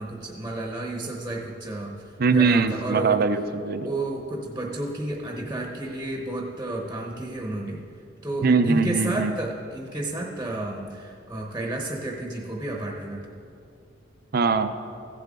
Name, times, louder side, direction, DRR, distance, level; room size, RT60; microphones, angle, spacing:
voice 1, 0.0-3.2 3.8-7.8 8.2-13.2, right 2 dB, 15° right, -1 dB, 0.9 m, -31 dB
voice 2, 2.2-3.9 8.4-9.3 14.3-14.7, right 4 dB, 50° right, 9 dB, 0.5 m, -21 dB
15.5 x 7.5 x 3.6 m, 2.5 s
head